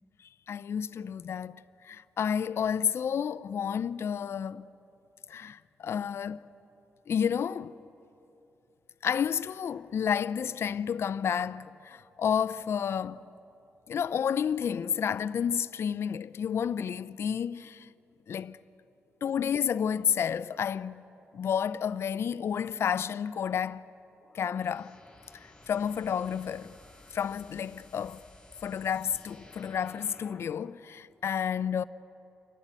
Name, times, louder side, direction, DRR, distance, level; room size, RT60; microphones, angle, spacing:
voice 1, 0.5-4.7 5.3-6.4 7.1-7.8 9.0-13.2 13.9-17.9 18.3-18.6 19.2-21.1 21.3-23.9 24.3-25.0 25.3-26.8 27.1-28.3 28.6-31.8, left 8 dB, 70° left, 0.5 m, -31 dB
sound 1, 24.2-30.6, left 2 dB, 15° left, 4.3 m, -55 dB
29.0 x 11.5 x 9.0 m
cardioid pair, 85°, 5 cm